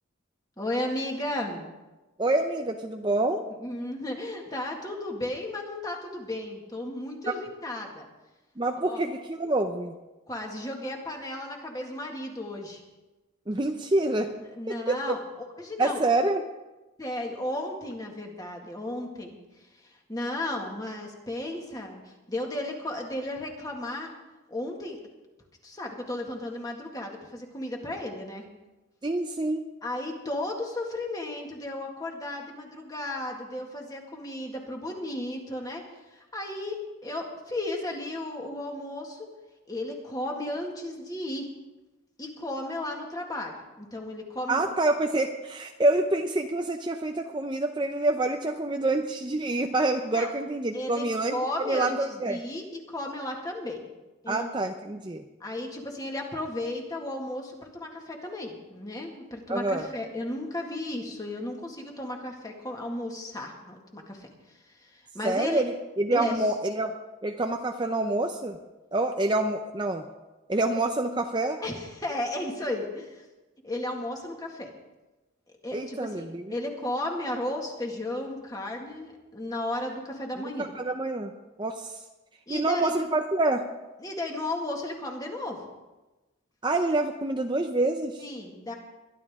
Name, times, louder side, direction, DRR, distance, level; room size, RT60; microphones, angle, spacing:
voice 1, 0.6-1.6 3.6-8.1 8.8-9.0 10.3-12.8 14.5-16.0 17.0-24.1 24.5-25.0 25.6-28.4 29.8-35.8 36.1-39.3 39.7-41.5 42.2-44.7 50.1-50.3 50.7-53.8 54.2-54.5 55.4-64.3 64.7-65.6 66.1-66.5 71.6-73.2 73.6-74.7 75.6-80.7 82.5-82.9 84.0-85.6 88.2-88.7, left 1 dB, 15° left, 1 dB, 1.9 m, -34 dB
voice 2, 2.2-3.5 8.6-9.9 13.5-14.3 14.7-15.0 15.8-16.5 29.0-29.7 44.5-52.4 54.3-55.2 59.5-59.9 65.2-66.9 67.2-68.6 68.9-70.0 70.5-71.6 75.7-76.5 80.6-81.3 81.6-82.0 82.5-83.6 86.6-88.2, right 2 dB, 20° right, 4 dB, 0.6 m, -27 dB
22.0 x 12.0 x 3.7 m, 1.1 s
head